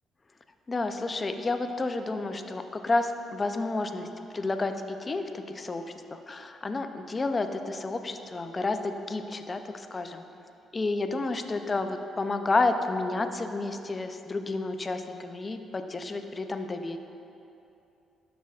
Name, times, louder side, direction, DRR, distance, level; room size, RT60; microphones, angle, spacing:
voice 1, 0.7-4.1 4.3-5.8 6.1-10.2 10.7-17.0, left 3 dB, 30° left, 7 dB, 0.5 m, -30 dB
12.5 x 6.0 x 2.4 m, 2.8 s
cardioid pair, 90°, 0 cm